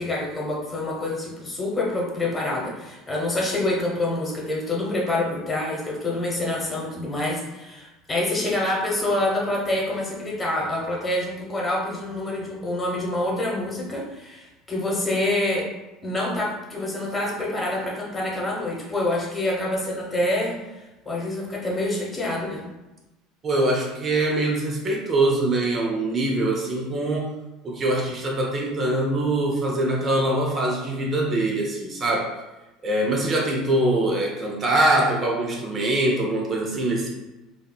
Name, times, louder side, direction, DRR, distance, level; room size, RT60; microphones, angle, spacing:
voice 1, 0.0-15.7 16.0-20.6 21.0-22.6, left 1 dB, 20° left, -3 dB, 1.0 m, -26 dB
voice 2, 23.4-27.3 27.6-32.3 32.8-37.1, right 1 dB, 35° right, 0 dB, 0.6 m, -23 dB
3.5 x 2.3 x 2.2 m, 1.0 s
hypercardioid pair, 75°, 0 cm